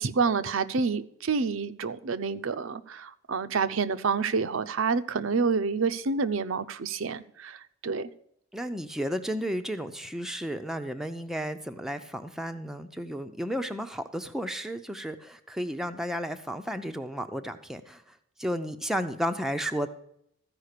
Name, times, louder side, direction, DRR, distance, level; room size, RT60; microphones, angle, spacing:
voice 1, 0.0-8.1, right 5 dB, 70° right, 0.6 m, -28 dB
voice 2, 8.5-19.9, equal, ahead, 0.5 m, -33 dB
14.0 x 5.1 x 6.6 m
head